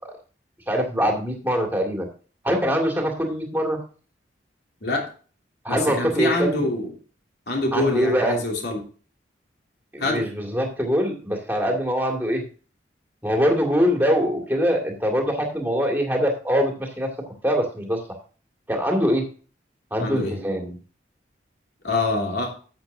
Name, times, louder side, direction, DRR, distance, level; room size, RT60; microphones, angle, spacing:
voice 1, 0.7-2.1 2.4-3.8 5.6-6.7 7.7-8.4 9.9-12.4 13.2-18.0 18.7-19.2 19.9-20.8, equal, 10° right, 1 dB, 2.1 m, -23 dB
voice 2, 5.7-6.9 7.5-8.8 10.0-10.2 20.0-20.3 21.8-22.5, left 2 dB, 65° left, 1 dB, 2.9 m, -25 dB
12.0 x 8.2 x 2.6 m, 0.38 s
head